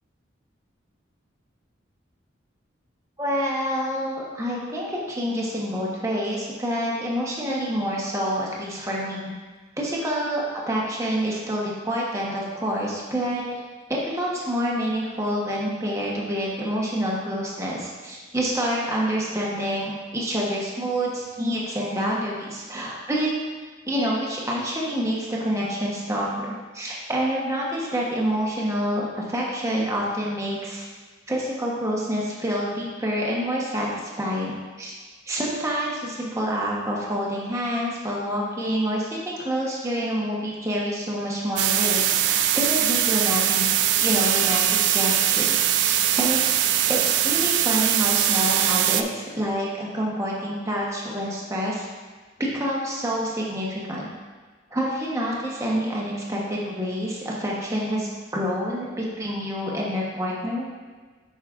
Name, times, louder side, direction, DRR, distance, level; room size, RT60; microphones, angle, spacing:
voice 1, 3.2-9.3 9.8-13.6 13.9-23.3 23.9-30.9 31.3-34.9 35.3-46.4 46.9-51.8 52.4-54.1 54.7-60.7, equal, 15° right, -4 dB, 1.0 m, -27 dB
sound 1, 41.6-49.0, right 11 dB, 60° right, 0.3 m, -21 dB
8.1 x 5.5 x 2.5 m, 1.4 s
head